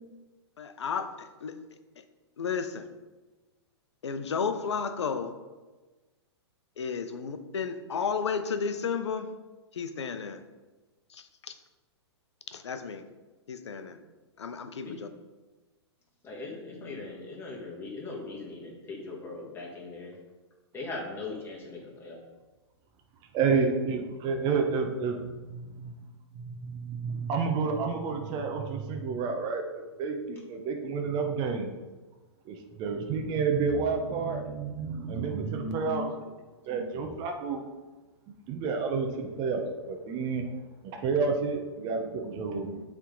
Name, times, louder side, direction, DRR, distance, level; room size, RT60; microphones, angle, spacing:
voice 1, 0.6-1.6 2.4-2.9 4.0-5.3 6.8-9.3 9.7-10.4 11.1-11.5 12.5-13.1 13.5-14.0 14.4-15.1, left 6 dB, 80° left, 9 dB, 0.7 m, -33 dB
voice 2, 16.2-20.1 20.7-22.2 24.4-24.6, left 3 dB, 15° left, -3 dB, 1.8 m, -40 dB
voice 3, 23.3-25.4 26.4-31.7 32.5-36.3 36.6-37.6 38.5-40.4 40.8-42.8, right 5 dB, 30° right, 3 dB, 0.8 m, -30 dB
8.3 x 3.6 x 3.9 m, 1.2 s
hypercardioid pair, 120°, 14 cm